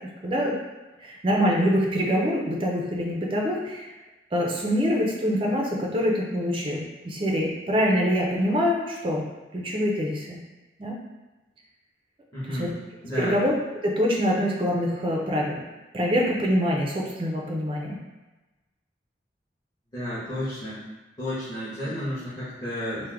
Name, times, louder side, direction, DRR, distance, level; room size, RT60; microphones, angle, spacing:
voice 1, 0.2-0.6 1.0-3.9 4.3-9.2 9.5-10.4 10.8-11.0 12.4-12.7 13.2-13.5 13.8-15.6 15.9-18.0, equal, 30° right, -2 dB, 0.4 m, -25 dB
voice 2, 12.3-12.7 13.0-13.4 19.9-20.8 21.2-23.1, left 1 dB, 20° left, -14 dB, 1.2 m, -31 dB
3.3 x 2.1 x 3.4 m, 1.1 s
head